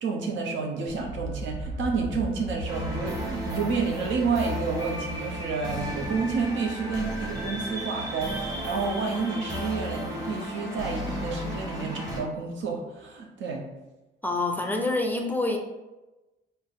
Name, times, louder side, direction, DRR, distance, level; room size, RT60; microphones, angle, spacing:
voice 1, 0.0-13.7, right 4 dB, 70° right, 1 dB, 0.8 m, -30 dB
sound 1, 0.9-12.7, left 1 dB, 80° left, 0.5 m, -40 dB
sound 2, 2.7-12.2, equal, 15° right, 1.2 m, -34 dB
voice 2, 14.2-15.6, left 2 dB, 10° left, 2 dB, 0.5 m, -26 dB
4.1 x 2.1 x 3.6 m, 1.1 s
cardioid pair, 90°, 20 cm